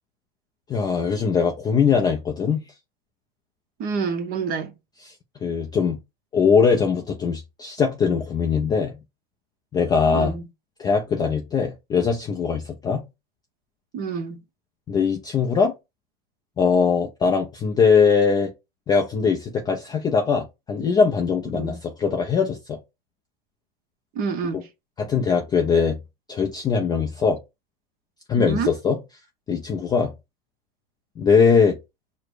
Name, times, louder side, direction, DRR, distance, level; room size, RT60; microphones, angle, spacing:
voice 1, 0.7-2.7 5.4-6.0 6.3-8.9 9.7-10.3 10.8-13.0 14.9-15.7 16.6-18.5 18.9-22.8 25.0-26.0 26.3-27.4 28.3-29.0 29.5-30.1 31.2-31.8, left 5 dB, 15° left, 0.3 m, -21 dB
voice 2, 3.8-4.7 10.1-10.4 13.9-14.4 21.5-21.8 24.1-24.7 28.3-28.7, right 5 dB, 30° right, 0.8 m, -27 dB
4.6 x 2.1 x 4.6 m
supercardioid pair, 130°, 31 cm